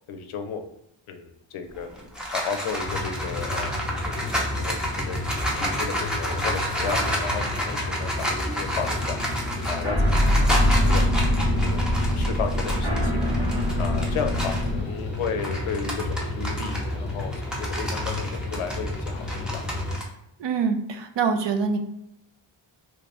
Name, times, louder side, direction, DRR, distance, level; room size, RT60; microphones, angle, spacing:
voice 1, 0.1-0.6 1.1-1.9 2.3-5.2 5.5-9.2 9.7-11.0 11.6-13.3 13.8-19.7, left 6 dB, 80° left, 6 dB, 0.6 m, -34 dB
sound 1, 1.7-14.7 15.1-20.0, equal, ahead, 0.5 m, -30 dB
sound 2, 2.8-19.9, left 2 dB, 20° left, 0.8 m, -32 dB
sound 3, 5.1-14.8, equal, 85° right, 1.4 m, -25 dB
voice 2, 20.4-21.8, right 5 dB, 60° right, 5 dB, 0.5 m, -24 dB
3.1 x 2.6 x 3.2 m, 0.79 s
wide cardioid pair, 150°, 49 cm